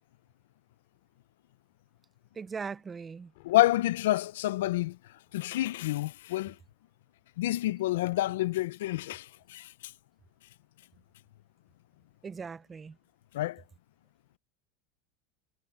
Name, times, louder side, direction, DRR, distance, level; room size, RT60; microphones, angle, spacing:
voice 1, 2.3-3.3 12.2-13.0, right 5 dB, 20° right, 0.5 m, -39 dB
Thunder, 3.2-7.1 7.4-7.5, left 25 dB, 70° left, 7.1 m, -65 dB
voice 2, 3.4-5.0 5.3-6.5 7.4-9.7 13.3-13.6, left 16 dB, 85° left, 0.5 m, -28 dB
supercardioid pair, 140°, 0 cm